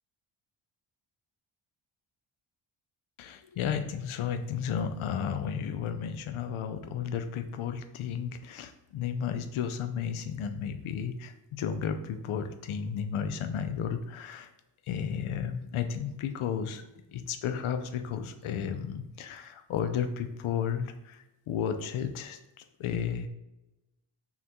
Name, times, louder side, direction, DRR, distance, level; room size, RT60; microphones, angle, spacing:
voice 1, 3.2-14.5 14.9-16.8 17.1-23.3, left 7 dB, 75° left, 8 dB, 0.6 m, -33 dB
5.6 x 2.3 x 2.9 m, 0.96 s
cardioid pair, 105°, 50 cm